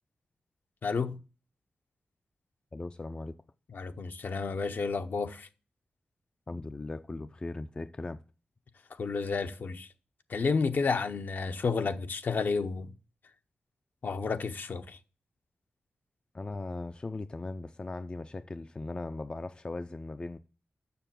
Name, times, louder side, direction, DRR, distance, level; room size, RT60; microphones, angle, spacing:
voice 1, 0.8-1.2 3.7-5.5 9.0-9.9 10.3-12.9 14.0-15.0, left 4 dB, 60° left, 0.8 m, -31 dB
voice 2, 2.7-3.3 6.5-8.2 16.3-20.4, left 2 dB, 25° left, 0.4 m, -38 dB
7.0 x 6.4 x 7.5 m
wide cardioid pair, 95°, 4 cm